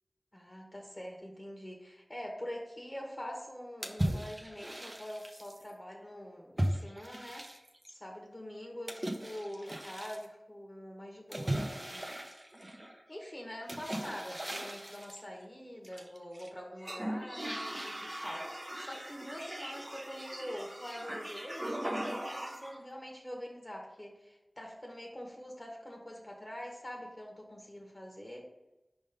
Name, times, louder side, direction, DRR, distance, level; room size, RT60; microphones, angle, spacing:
voice 1, 0.3-7.5 7.9-12.0 13.1-28.5, equal, 30° left, 0 dB, 1.3 m, -45 dB
sound 1, 3.8-5.6 6.6-7.9 8.9-10.3 11.3-13.0 13.7-15.2 15.8-16.5 16.8-22.8, right 1 dB, 30° right, 0.8 m, -38 dB
5.1 x 3.6 x 5.2 m, 1.0 s
wide cardioid pair, 60°, 0 cm